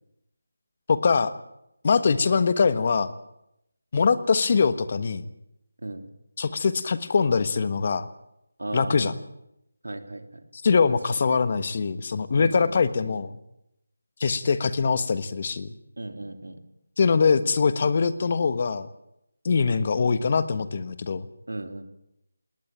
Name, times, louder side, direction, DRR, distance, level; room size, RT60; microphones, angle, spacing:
voice 1, 0.9-1.3 1.8-3.1 3.9-5.2 6.4-8.1 8.7-9.1 10.5-13.4 14.2-15.7 17.0-18.9 19.4-21.3, left 5 dB, 35° left, 13 dB, 1.4 m, -23 dB
voice 2, 8.6-9.1 9.8-10.4 11.3-11.4 12.3-12.8 16.0-16.6 21.5-21.8, right 2 dB, 90° right, 8 dB, 3.2 m, -35 dB
19.5 x 19.0 x 8.9 m, 0.81 s
figure-of-eight pair, 170°, 0 cm